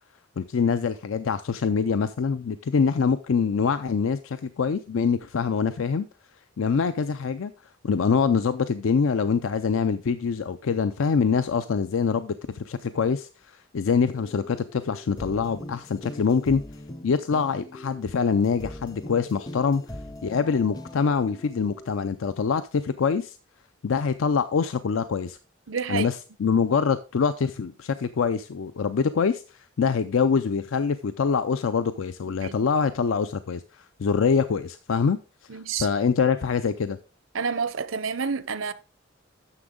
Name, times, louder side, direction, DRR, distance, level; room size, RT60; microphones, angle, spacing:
voice 1, 0.4-6.1 6.6-7.5 7.8-16.6 17.0-19.8 20.2-23.4 23.8-25.4 25.9-35.2 35.5-37.0, left 5 dB, 85° left, 0.4 m, -25 dB
sound 1, 14.1-22.1, left 1 dB, 20° left, 0.5 m, -41 dB
voice 2, 25.7-26.1 32.3-32.5 35.5-35.9 37.3-38.7, right 5 dB, 85° right, 0.8 m, -29 dB
9.8 x 7.0 x 3.7 m
head